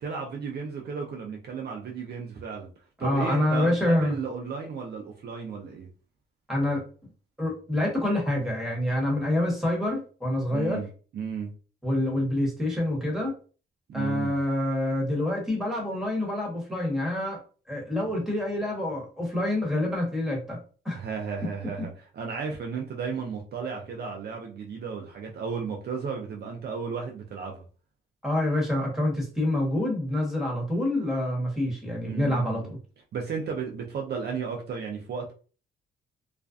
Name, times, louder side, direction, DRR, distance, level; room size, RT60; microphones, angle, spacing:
voice 1, 0.0-2.7 3.0-5.9 10.5-10.9 11.1-11.5 13.9-14.4 20.9-27.6 32.0-32.7 33.1-35.3, right 5 dB, 55° right, 1 dB, 0.6 m, -34 dB
voice 2, 3.0-4.2 6.5-6.8 7.4-10.8 11.8-13.3 13.9-17.4 17.7-20.6 20.8-21.0 21.8-21.9 28.2-32.8, left 1 dB, ahead, -2 dB, 1.2 m, -27 dB
2.4 x 2.1 x 2.4 m, 0.38 s
cardioid pair, 90°, 20 cm